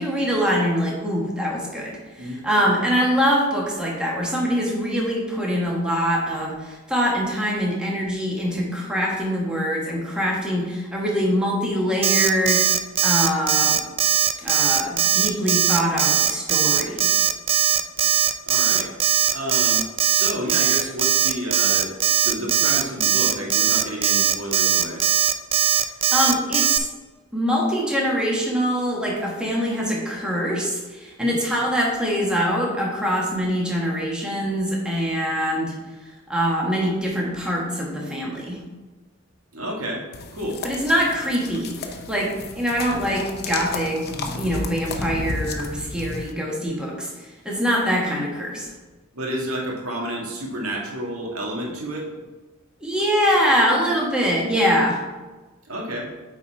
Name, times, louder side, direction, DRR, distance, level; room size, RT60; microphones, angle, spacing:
voice 1, 0.0-12.6 13.0-13.8 14.4-17.1 26.1-26.9 27.3-35.7 36.3-38.6 40.6-48.7 52.8-55.0, equal, 5° right, -3 dB, 1.4 m, -24 dB
Alarm, 12.0-26.8, right 10 dB, 25° right, 0.3 m, -19 dB
voice 2, 18.5-18.9 19.3-21.9 22.2-25.0 31.2-31.3 39.5-40.1 40.3-40.6 49.1-52.1 55.6-56.1, right 1 dB, 90° right, -1 dB, 1.6 m, -30 dB
sound 1, 40.1-46.3, left 3 dB, 50° left, 0.7 m, -33 dB
8.2 x 4.2 x 4.6 m, 1.2 s
head